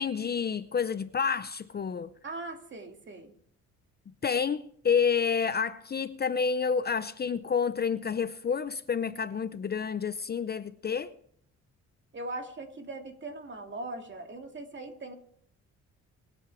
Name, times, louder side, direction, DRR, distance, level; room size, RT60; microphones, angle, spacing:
voice 1, 0.0-2.1 4.1-11.1, left 6 dB, 35° left, 0.6 m, -29 dB
voice 2, 2.2-3.3 12.1-15.1, right 2 dB, 40° right, 2.5 m, -40 dB
22.5 x 7.9 x 4.8 m
cardioid pair, 90°, 30 cm